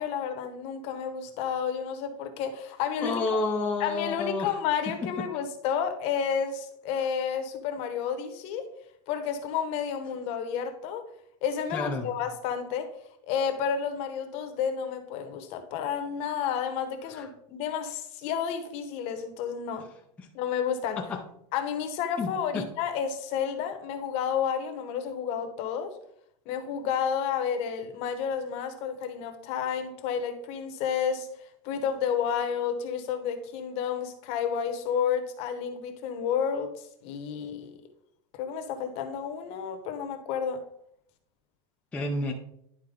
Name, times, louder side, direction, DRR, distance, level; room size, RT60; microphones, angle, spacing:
voice 1, 0.0-3.4 3.8-8.7 9.1-11.0 11.4-12.9 13.3-19.9 20.3-21.0 21.5-25.9 26.5-31.3 31.6-37.7 38.4-40.6, left 7 dB, 40° left, 7 dB, 1.0 m, -31 dB
voice 2, 3.0-4.5 5.0-5.2 11.7-12.1 17.2-17.3 21.0-21.2 22.2-22.6 41.9-42.3, left 3 dB, 10° left, -1 dB, 0.5 m, -30 dB
11.0 x 4.3 x 3.8 m, 0.71 s
supercardioid pair, 160°, 15 cm